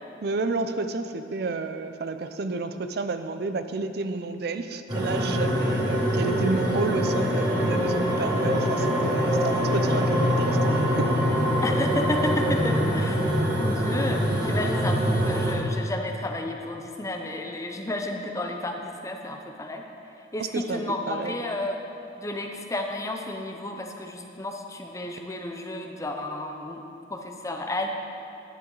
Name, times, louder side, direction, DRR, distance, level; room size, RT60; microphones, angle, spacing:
voice 1, 0.2-11.2 20.4-21.4, right 3 dB, 60° right, 9 dB, 0.5 m, -31 dB
sound 1, 4.9-15.5, equal, 25° right, 2.0 m, -24 dB
voice 2, 11.6-13.2 13.6-19.8 20.3-21.8 22.2-26.8 27.1-27.9, left 1 dB, 15° left, 3 dB, 0.6 m, -32 dB
10.0 x 9.0 x 3.9 m, 2.7 s
head